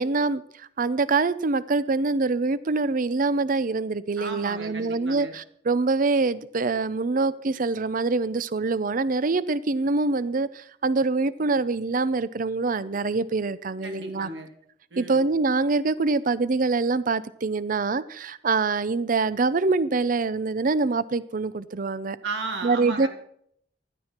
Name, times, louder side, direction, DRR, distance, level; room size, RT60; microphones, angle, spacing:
voice 1, 0.0-14.3 15.0-22.2 22.6-23.1, right 3 dB, 50° right, 17 dB, 0.6 m, -25 dB
voice 2, 4.2-5.3 13.8-14.5 14.9-15.2 22.2-23.1, right 3 dB, 75° right, 4 dB, 2.7 m, -34 dB
16.0 x 12.0 x 4.5 m, 0.67 s
head